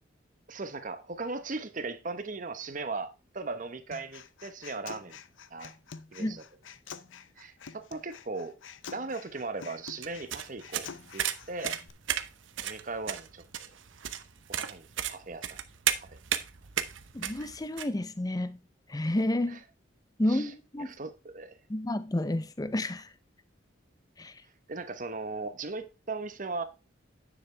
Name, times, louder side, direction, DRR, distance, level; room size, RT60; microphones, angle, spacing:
voice 1, 0.5-5.2 5.5-5.7 6.1-6.4 7.4-8.5 8.9-11.8 12.6-13.4 14.6-15.6 16.0-16.1 19.5-19.6 20.3-20.5 20.8-21.6 24.7-26.6, right 3 dB, 40° right, 1.1 m, -38 dB
Human voice, 3.9-11.9, left 6 dB, 80° left, 0.7 m, -47 dB
sound 1, 10.0-17.9, right 10 dB, 80° right, 0.8 m, -34 dB
voice 2, 17.1-18.6 18.9-19.6 20.2-20.9 21.7-23.1 24.2-24.4, left 1 dB, 20° left, 0.6 m, -30 dB
9.9 x 7.3 x 3.4 m
head